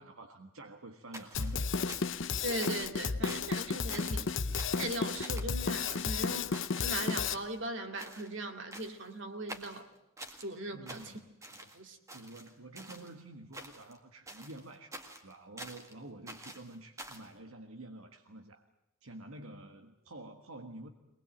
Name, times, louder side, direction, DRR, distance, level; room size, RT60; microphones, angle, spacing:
voice 1, 0.0-2.0 10.7-11.7 12.1-18.6 19.0-20.9, right 2 dB, 85° right, 1.6 m, -49 dB
sound 1, 1.1-2.3 2.6-3.0 3.3-3.6 3.9-4.3 4.6-4.9 5.2-5.5 5.9-6.9 7.2-7.7 8.0-8.3 8.7-9.1 9.5-10.5 10.9-11.8 12.1-13.1 13.5-14.0 14.3-15.9 16.3-17.3, right 1 dB, 15° right, 1.8 m, -48 dB
Drum kit, 1.3-7.3, left 5 dB, 60° left, 0.8 m, -33 dB
voice 2, 2.4-4.3 4.7-9.9 10.4-11.1 11.7-12.0, right 1 dB, 60° right, 2.3 m, -39 dB
23.0 x 20.0 x 9.0 m
head